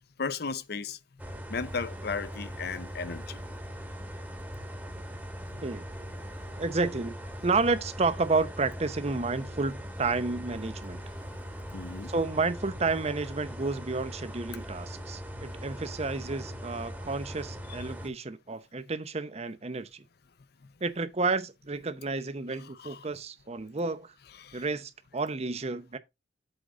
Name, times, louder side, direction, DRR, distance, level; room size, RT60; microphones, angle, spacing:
voice 1, 0.2-1.0 1.5-3.4 5.5-5.6 11.7-12.1 22.8-23.1 24.4-24.6, left 5 dB, 60° left, 0.7 m, -35 dB
sound 1, 1.2-18.1, equal, 10° right, 1.4 m, -40 dB
voice 2, 6.6-7.1 7.4-11.0 12.1-20.0 20.8-24.1 24.5-26.0, right 3 dB, 35° right, 0.7 m, -31 dB
8.0 x 3.9 x 5.1 m
head